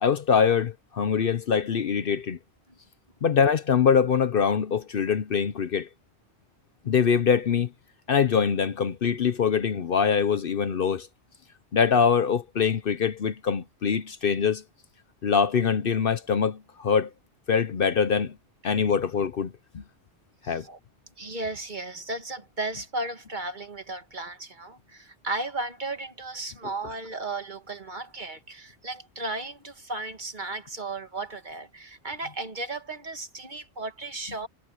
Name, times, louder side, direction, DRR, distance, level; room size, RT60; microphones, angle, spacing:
voice 1, 0.0-2.4 3.2-5.9 6.9-7.7 8.1-11.1 11.7-14.6 15.2-17.1 17.5-18.4 18.6-19.8 20.5-20.7, left 6 dB, 55° left, 0.9 m, -23 dB
voice 2, 20.4-20.8 21.2-34.5, right 2 dB, 45° right, 1.9 m, -35 dB
omnidirectional pair, 1.2 m